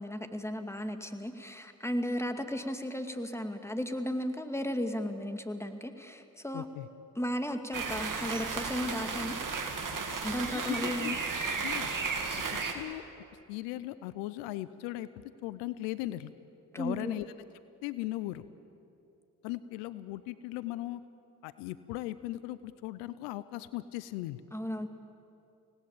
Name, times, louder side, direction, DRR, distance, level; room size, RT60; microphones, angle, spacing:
voice 1, 0.0-6.7 7.2-9.4 10.2-11.2 16.7-17.2 24.5-24.9, equal, 5° left, 7 dB, 2.4 m, -35 dB
voice 2, 6.5-6.9 10.4-11.2 11.6-11.9 12.5-13.0 13.5-15.1 15.4-16.3 16.8-17.3 17.8-18.4 19.4-21.0 21.4-24.4, left 16 dB, 85° left, 15 dB, 0.7 m, -38 dB
sound 1, 7.7-12.7, right 4 dB, 50° right, 2.9 m, -34 dB
25.5 x 18.5 x 8.6 m, 2.7 s
hypercardioid pair, 45°, 41 cm